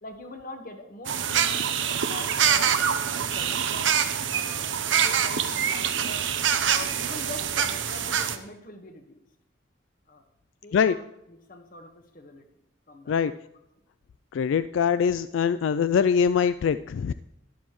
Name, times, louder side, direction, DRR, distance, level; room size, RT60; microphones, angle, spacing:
voice 1, 0.0-2.7 3.1-4.0 4.3-6.3 6.6-9.2 10.1-10.3 10.6-12.4 12.9-13.3, left 2 dB, 45° left, 5 dB, 1.4 m, -43 dB
sound 1, 1.0-8.4, right 8 dB, 80° right, 0.8 m, -25 dB
voice 2, 14.3-17.1, left 7 dB, 80° left, 13 dB, 0.3 m, -23 dB
12.5 x 11.0 x 3.1 m, 0.81 s
head